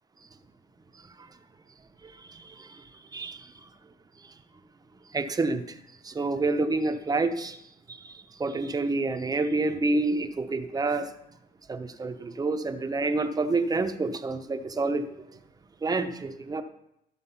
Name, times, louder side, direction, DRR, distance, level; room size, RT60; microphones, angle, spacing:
voice 1, 2.0-2.8 3.1-3.5 5.1-5.6 6.0-7.6 7.9-11.1 11.7-15.0 15.8-16.6, right 3 dB, 20° right, 8 dB, 0.8 m, -28 dB
13.5 x 5.0 x 5.6 m, 0.81 s
cardioid pair, 110°, 17 cm